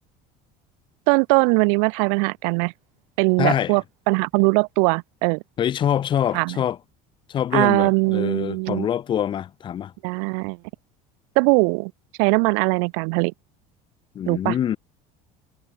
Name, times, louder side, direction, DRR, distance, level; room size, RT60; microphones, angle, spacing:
voice 1, 1.1-2.7 3.2-5.4 6.3-6.6 7.5-8.9 10.0-10.6 11.4-11.9 12.2-13.3 14.3-14.6, right 40 dB or more, 80° right, 2.0 m, -20 dB
voice 2, 3.4-3.8 5.6-6.8 7.3-9.9 14.2-14.8, left 10 dB, 30° left, 3.6 m, -24 dB
cardioid pair, 170°, 16 cm